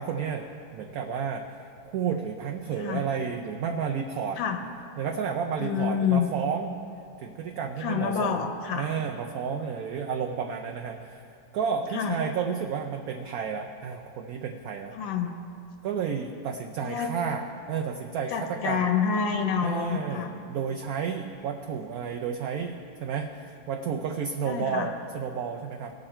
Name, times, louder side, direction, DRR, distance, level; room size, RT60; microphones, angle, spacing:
voice 1, 0.0-1.4 1.8-4.4 5.0-6.7 7.2-8.3 8.7-11.2 11.5-14.9 15.8-18.8 19.6-25.9, right 6 dB, 70° right, 3 dB, 0.8 m, -31 dB
voice 2, 5.6-6.3 7.8-8.9 11.9-12.2 14.9-15.3 16.8-17.1 18.3-20.3 24.5-24.9, left 7 dB, 80° left, 5 dB, 1.5 m, -27 dB
19.0 x 6.4 x 4.3 m, 2.5 s
omnidirectional pair, 2.1 m